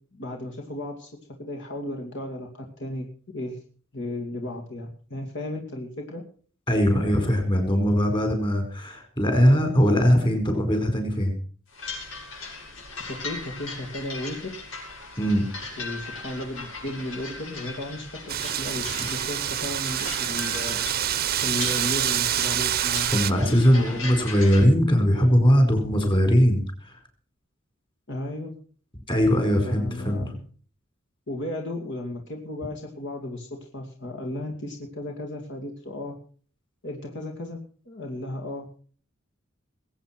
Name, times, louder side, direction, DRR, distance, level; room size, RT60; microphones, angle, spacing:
voice 1, 0.1-1.1 1.4-3.6 3.9-6.2 13.1-14.7 15.8-24.1 28.1-28.5 29.6-30.4 31.3-36.2 36.8-38.7, left 1 dB, 60° left, 2 dB, 2.6 m, -35 dB
voice 2, 6.7-11.3 15.2-15.5 23.1-26.9 29.1-30.3, equal, 25° left, 5 dB, 4.8 m, -20 dB
sound 1, 11.7-24.6, left 3 dB, 85° left, 7.6 m, -38 dB
Wind, 18.3-23.3, right 11 dB, 50° right, 0.8 m, -26 dB
21.5 x 8.6 x 6.0 m, 0.43 s
head